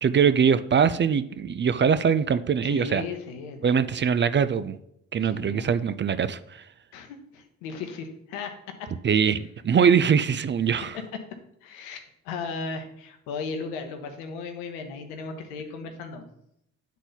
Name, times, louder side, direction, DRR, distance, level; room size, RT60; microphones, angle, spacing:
voice 1, 0.0-3.0 3.6-4.8 5.1-6.6 9.0-11.0, right 7 dB, 30° right, 13 dB, 0.4 m, -22 dB
voice 2, 2.6-3.6 5.2-5.7 6.9-8.5 8.8-8.9 9.2-9.4 11.6-16.2, left 4 dB, 85° left, 7 dB, 0.8 m, -36 dB
8.1 x 4.0 x 4.0 m, 0.75 s
hypercardioid pair, 40°, 36 cm